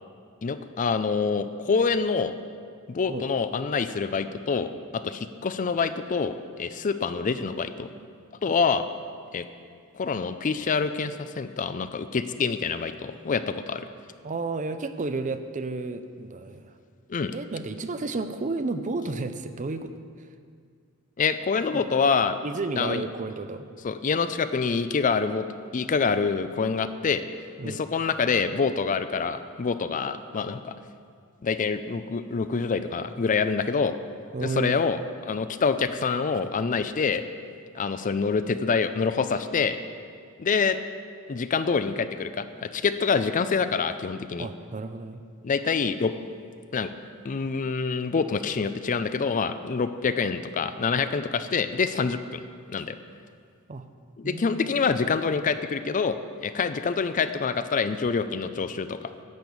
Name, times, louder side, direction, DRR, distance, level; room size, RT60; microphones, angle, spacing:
voice 1, 0.4-2.3 2.9-7.9 8.4-8.8 9.3-9.4 9.9-13.9 17.1-17.3 21.2-22.4 22.8-23.0 23.8-25.5 25.7-27.3 27.6-30.8 31.4-34.0 34.4-37.2 37.7-39.8 40.4-40.8 41.3-44.5 45.4-46.1 46.7-46.9 47.2-52.4 52.7-53.0 54.2-59.0, left 5 dB, 35° left, 11 dB, 0.4 m, -26 dB
voice 2, 14.2-16.7 17.3-19.9 21.7-22.0 22.4-23.7 27.6-27.8 34.3-34.8 44.4-45.2 53.7-53.8 54.2-54.6, right 3 dB, 35° right, 10 dB, 0.5 m, -32 dB
10.5 x 6.9 x 8.0 m, 2.2 s
head